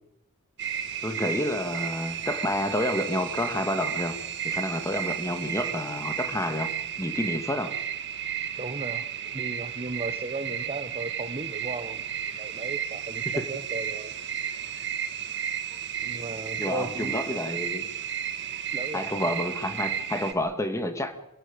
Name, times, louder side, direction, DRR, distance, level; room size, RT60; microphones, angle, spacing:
sound 1, 0.6-20.3, right 9 dB, 55° right, 1.9 m, -33 dB
voice 1, 1.0-4.2 4.4-6.7 7.0-7.8 13.4-13.5 16.6-17.9 18.9-21.1, left 1 dB, 15° left, 8 dB, 2.1 m, -29 dB
voice 2, 8.6-14.1 16.0-17.2 18.7-19.3, right 2 dB, 25° right, 10 dB, 1.1 m, -36 dB
27.0 x 16.5 x 8.9 m, 0.88 s
head